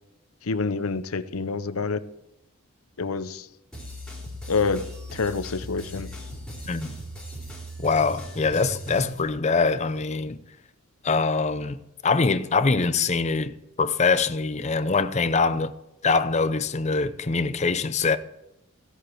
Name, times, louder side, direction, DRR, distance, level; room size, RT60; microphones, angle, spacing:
voice 1, 0.4-2.0 3.0-3.5 4.5-6.1, left 4 dB, 75° left, 0.7 m, -27 dB
sound 1, 3.7-9.2, equal, 5° left, 3.4 m, -38 dB
voice 2, 6.7-7.0 7.8-10.4 11.0-15.7 16.0-18.2, left 4 dB, 30° left, 0.6 m, -24 dB
16.0 x 8.2 x 4.6 m
head